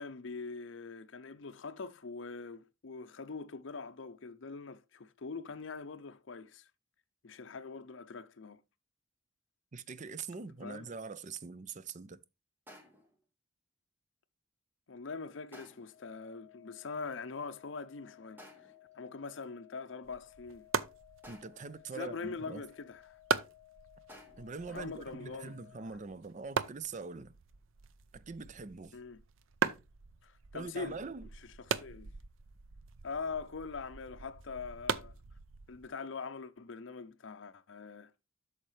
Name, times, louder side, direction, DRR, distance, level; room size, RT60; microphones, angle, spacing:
voice 1, 0.0-6.7 7.2-8.6 10.6-10.9 14.9-18.4 18.9-20.7 21.9-23.2 24.7-25.6 28.9-29.2 30.2-31.0 31.6-32.1 33.0-35.2 35.7-38.1, left 4 dB, 65° left, 0.6 m, -43 dB
voice 2, 9.7-12.2 21.3-22.6 24.4-27.4 28.1-29.0 30.5-31.2, right 4 dB, 40° right, 0.5 m, -43 dB
sound 1, 12.7-13.2 15.5-16.0 18.4-18.9 21.2-21.8 24.1-24.6, equal, 10° right, 1.7 m, -55 dB
sound 2, 15.9-25.9, left 16 dB, 40° left, 2.9 m, -60 dB
sound 3, 20.0-35.9, right 6 dB, 80° right, 0.6 m, -40 dB
8.6 x 6.5 x 3.2 m
head